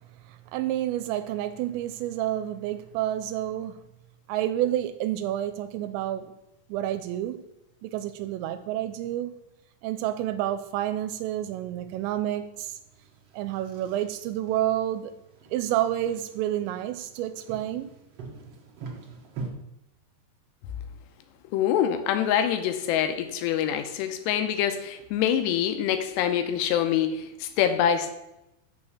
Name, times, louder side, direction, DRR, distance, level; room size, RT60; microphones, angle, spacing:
voice 1, 0.2-3.8 4.3-6.3 6.7-7.4 7.8-9.3 9.8-12.8 13.3-15.1 15.5-17.9, right 12 dB, 85° right, 10 dB, 2.8 m, -29 dB
sound 1, 10.5-19.5, right 4 dB, 65° right, 1.6 m, -45 dB
voice 2, 21.5-28.1, left 9 dB, 80° left, 8 dB, 2.8 m, -25 dB
6.5 x 6.5 x 7.0 m, 0.88 s
omnidirectional pair, 5.0 m